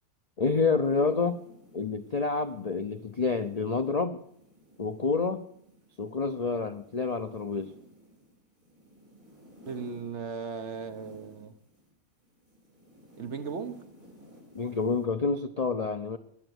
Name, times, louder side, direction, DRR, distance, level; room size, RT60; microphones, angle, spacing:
voice 1, 0.4-1.4 1.7-4.2 4.8-5.4 6.0-7.7 14.5-16.2, left 4 dB, 50° left, 0.4 m, -28 dB
sound 1, 0.8-11.9 12.2-15.1, equal, 30° right, 4.6 m, -56 dB
voice 2, 9.7-11.5 13.2-13.8, right 5 dB, 50° right, 1.1 m, -37 dB
22.0 x 8.1 x 7.9 m
omnidirectional pair, 1.7 m